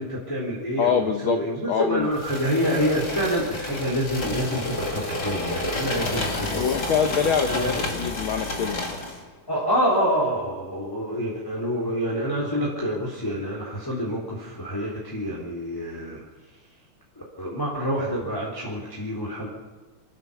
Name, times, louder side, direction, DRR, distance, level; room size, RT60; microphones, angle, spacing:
voice 1, 0.0-6.6 7.5-7.9 9.5-16.2 17.2-19.5, equal, 5° left, -5 dB, 3.6 m, -27 dB
voice 2, 0.8-1.4 1.7-2.1 6.5-8.8, left 7 dB, 90° left, 6 dB, 1.1 m, -24 dB
sound 1, 2.1-9.2, left 2 dB, 35° left, 2.7 m, -30 dB
25.5 x 15.5 x 7.1 m, 1.3 s
omnidirectional pair, 3.6 m